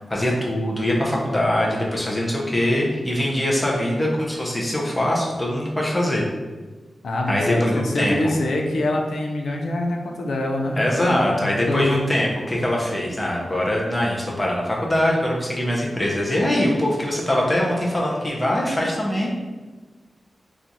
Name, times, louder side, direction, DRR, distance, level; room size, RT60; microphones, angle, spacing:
voice 1, 0.1-6.3 7.3-8.3 10.7-19.3, left 1 dB, 10° left, -3 dB, 0.6 m, -22 dB
voice 2, 7.0-12.1, left 1 dB, 85° left, 1 dB, 0.5 m, -25 dB
2.9 x 2.4 x 3.9 m, 1.3 s
wide cardioid pair, 170°, 0 cm